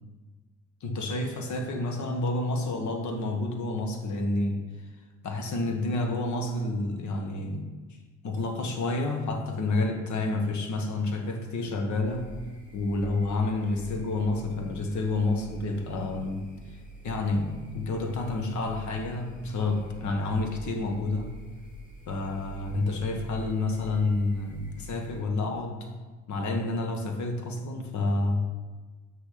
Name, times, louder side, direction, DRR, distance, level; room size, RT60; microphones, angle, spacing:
voice 1, 0.8-4.6 5.2-7.7 8.2-12.3 12.7-16.8 17.0-21.3 22.1-25.9 26.3-28.4, left 2 dB, 70° left, 3 dB, 1.5 m, -29 dB
sound 1, 12.0-25.2, right 2 dB, 25° left, 2.2 m, -46 dB
7.3 x 6.6 x 5.1 m, 1.3 s
cardioid pair, 90°, 30 cm